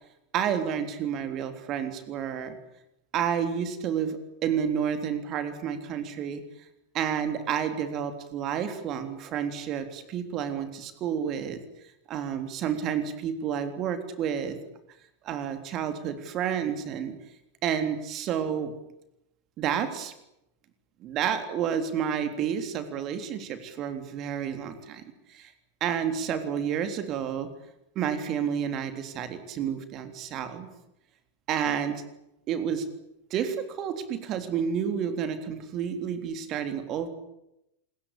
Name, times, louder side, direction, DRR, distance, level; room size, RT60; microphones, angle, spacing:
voice 1, 0.3-2.6 3.1-6.4 6.9-11.6 12.1-14.6 15.2-17.2 17.6-18.7 19.6-20.1 21.0-25.0 25.3-25.5 25.8-27.5 28.0-30.7 31.5-32.0 32.5-32.8 33.3-37.1, right 8 dB, 35° right, 8 dB, 3.6 m, -30 dB
27.0 x 21.5 x 8.6 m, 0.85 s
figure-of-eight pair, 90°, 0 cm